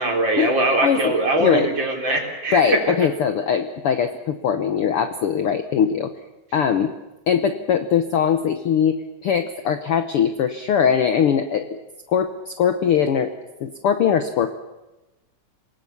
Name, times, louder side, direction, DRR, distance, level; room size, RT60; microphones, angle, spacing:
voice 1, 0.0-2.8, right 2 dB, 35° right, 2 dB, 4.1 m, -21 dB
voice 2, 0.8-1.1 1.4-1.7 2.5-6.1 6.5-6.9 7.3-11.8 12.1-13.3 13.6-14.5, left 8 dB, 65° left, 9 dB, 1.5 m, -21 dB
28.0 x 18.5 x 7.2 m, 1.0 s
omnidirectional pair, 3.6 m